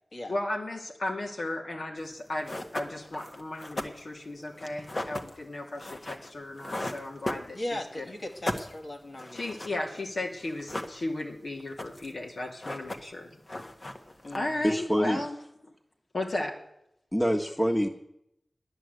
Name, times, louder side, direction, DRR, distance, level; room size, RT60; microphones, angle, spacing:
voice 1, 0.3-8.0 9.3-13.4 14.3-15.4 15.6-15.7 16.1-16.6, left 2 dB, 80° left, 0 dB, 2.6 m, -35 dB
sound 1, 2.1-2.2 2.4-7.9 8.2-9.8 10.1-10.2 10.4-11.3 11.6-12.2 12.5-13.2 13.5-14.7, left 1 dB, 45° left, 1.4 m, -37 dB
voice 2, 7.5-9.5 14.2-14.7, left 1 dB, 60° left, 1 dB, 2.3 m, -38 dB
voice 3, 14.6-15.2 17.1-17.9, equal, 15° left, 2 dB, 1.5 m, -25 dB
12.5 x 10.5 x 8.1 m, 0.79 s
wide cardioid pair, 65°, 0 cm